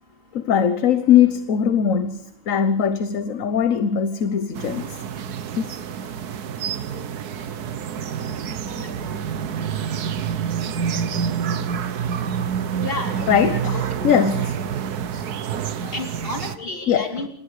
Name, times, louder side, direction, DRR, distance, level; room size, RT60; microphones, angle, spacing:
voice 1, 0.3-5.0 5.6-5.8 6.9-7.1 7.4-7.5 8.7-9.0 13.3-14.6 15.1-15.2 15.5-15.9 16.9-17.1, left 8 dB, 60° left, 1.4 m, -21 dB
sound 1, 4.6-16.6, right 7 dB, 90° right, 1.6 m, -27 dB
voice 2, 12.8-13.1 13.4-13.8 15.9-17.3, left 3 dB, 35° left, 4.2 m, -31 dB
28.0 x 20.0 x 4.9 m
omnidirectional pair, 1.6 m